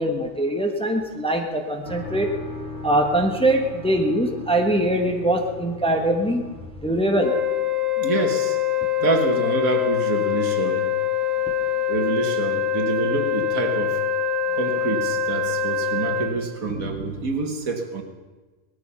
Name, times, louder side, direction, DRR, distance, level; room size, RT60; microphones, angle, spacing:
voice 1, 0.0-2.3 2.8-6.4 6.8-7.4, right 1 dB, 5° left, 3 dB, 1.3 m, -22 dB
sound 1, 1.9-7.7, left 3 dB, 40° left, 2.8 m, -38 dB
Wind instrument woodwind instrument, 7.2-16.3, left 7 dB, 35° right, 6.3 m, -24 dB
voice 2, 8.0-8.6 9.0-11.0 11.9-14.0 14.5-18.0, right 3 dB, 70° right, 4 dB, 2.0 m, -26 dB
18.5 x 13.5 x 5.7 m, 1.3 s
omnidirectional pair, 1.5 m